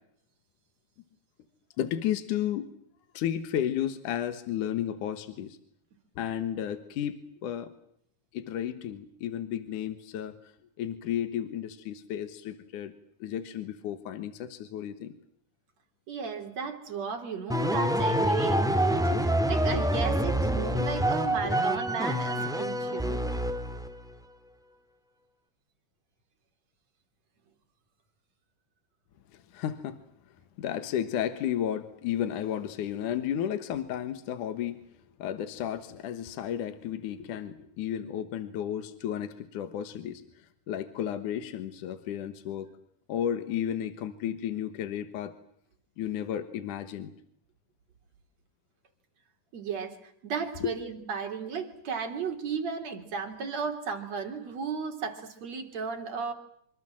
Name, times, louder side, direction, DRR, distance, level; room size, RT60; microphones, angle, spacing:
voice 1, 1.8-2.7 3.1-5.6 6.2-7.7 8.3-10.4 10.8-12.9 13.2-15.1 19.7-19.8 20.6-20.9 21.4-21.5 29.3-30.0 30.6-34.8 35.2-42.7 43.1-45.3 46.0-47.1 50.6-50.7, left 10 dB, 75° left, 11 dB, 2.8 m, -33 dB
voice 2, 16.1-19.1 19.5-23.2 49.5-56.3, right 5 dB, 55° right, 4 dB, 4.5 m, -34 dB
sound 1, 17.5-24.0, right 1 dB, ahead, 1.4 m, -27 dB
26.5 x 25.0 x 7.6 m, 0.71 s
omnidirectional pair, 3.7 m